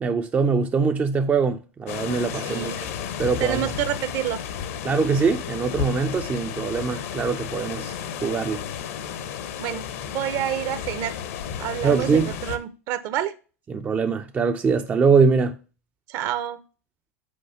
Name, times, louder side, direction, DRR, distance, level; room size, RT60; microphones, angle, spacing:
voice 1, 0.0-2.9 3.2-3.7 4.8-7.9 8.2-8.6 11.8-12.3 13.7-15.5, right 5 dB, 20° right, 0.5 m, -22 dB
sound 1, 1.9-12.6, left 8 dB, 60° left, 0.9 m, -33 dB
voice 2, 2.4-2.8 3.4-4.4 9.6-9.8 10.1-11.1 11.6-13.3 16.1-16.6, right 11 dB, 45° right, 0.8 m, -28 dB
6.5 x 4.8 x 5.6 m
figure-of-eight pair, 90°, 8 cm